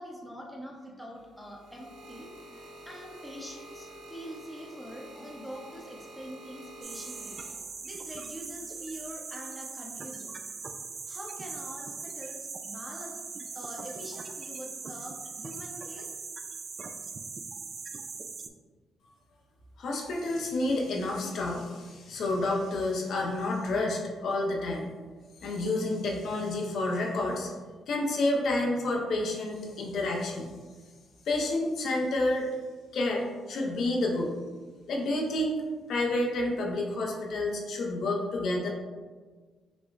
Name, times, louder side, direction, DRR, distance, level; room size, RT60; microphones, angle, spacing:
voice 1, 0.0-7.4 7.8-10.4 11.1-16.1, equal, 5° left, -3 dB, 0.8 m, -44 dB
sound 1, 1.2-8.0 8.8-9.1, right 1 dB, 65° right, 1.0 m, -48 dB
sound 2, 6.8-18.5, right 4 dB, 45° right, 0.3 m, -40 dB
voice 2, 19.8-24.9 25.4-27.5 27.9-30.5 31.3-32.5 32.9-34.3 34.9-35.6 35.9-38.7, left 2 dB, 65° left, 0 dB, 0.5 m, -29 dB
6.0 x 2.0 x 2.4 m, 1.4 s
cardioid pair, 90°, 0 cm